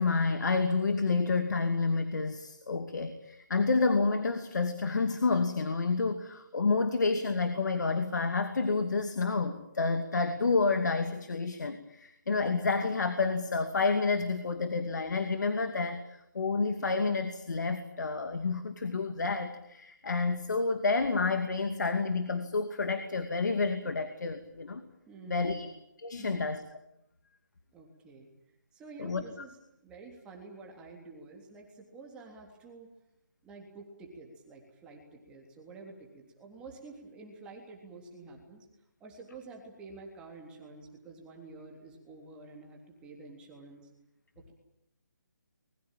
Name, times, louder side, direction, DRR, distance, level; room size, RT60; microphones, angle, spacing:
voice 1, 0.0-16.0 16.3-24.8 25.3-25.7 26.0-26.6 29.0-29.2, left 4 dB, 70° left, 8 dB, 2.5 m, -29 dB
voice 2, 25.1-25.7 26.2-26.4 27.7-28.3 28.7-29.6 29.8-32.9 33.4-38.7 39.0-43.9 44.3-44.5, right 3 dB, 10° right, 1 dB, 3.3 m, -49 dB
24.5 x 21.5 x 9.1 m, 0.81 s
hypercardioid pair, 165°, 10 cm